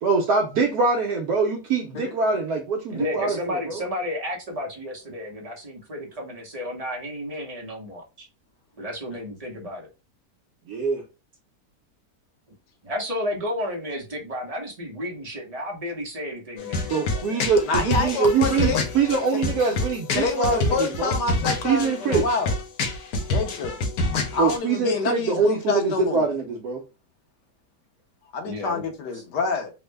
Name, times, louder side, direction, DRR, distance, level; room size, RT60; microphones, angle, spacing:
voice 1, 0.0-3.8 10.7-11.0 16.9-21.1 21.6-22.3 24.4-26.8, right 4 dB, 70° right, 1.1 m, -23 dB
voice 2, 2.9-8.3 8.8-9.9 12.8-17.4 28.5-29.2, left 1 dB, 30° right, 0.7 m, -32 dB
sound 1, 16.6-24.6, left 2 dB, 70° left, 1.1 m, -27 dB
voice 3, 17.6-18.8 20.1-22.5 23.3-23.8 24.3-26.2 28.3-29.7, left 4 dB, 85° left, 1.4 m, -27 dB
3.5 x 2.1 x 3.2 m
omnidirectional pair, 1.8 m